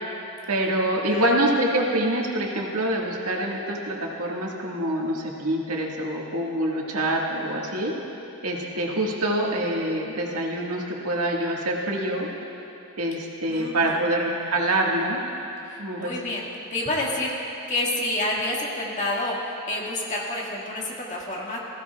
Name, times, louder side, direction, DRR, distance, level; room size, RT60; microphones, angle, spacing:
voice 1, 0.5-7.9 8.4-12.3 13.0-15.2 15.8-16.1, right 1 dB, 90° right, -2 dB, 1.7 m, -25 dB
voice 2, 1.0-1.3 13.5-14.1 15.6-16.4 16.7-21.6, left 1 dB, 35° left, -3 dB, 1.8 m, -29 dB
18.5 x 15.0 x 2.3 m, 2.9 s
head